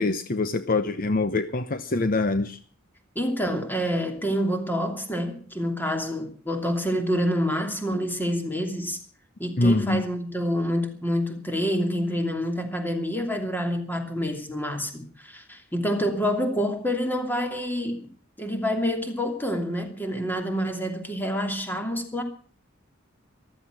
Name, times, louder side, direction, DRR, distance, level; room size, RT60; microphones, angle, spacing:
voice 1, 0.0-2.6 9.6-10.0, left 2 dB, 45° left, 0.8 m, -24 dB
voice 2, 3.1-9.0 9.4-18.1 18.4-22.2, equal, 10° left, 2.8 m, -27 dB
14.5 x 13.5 x 6.1 m
head